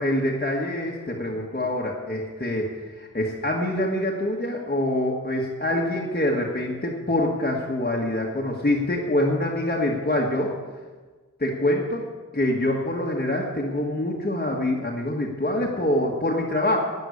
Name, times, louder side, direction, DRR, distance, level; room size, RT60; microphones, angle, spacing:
voice 1, 0.0-2.6 3.0-10.5 11.4-12.1 12.3-16.8, left 1 dB, 30° left, -2 dB, 1.7 m, -25 dB
11.5 x 9.4 x 8.4 m, 1.4 s
wide cardioid pair, 85°, 32 cm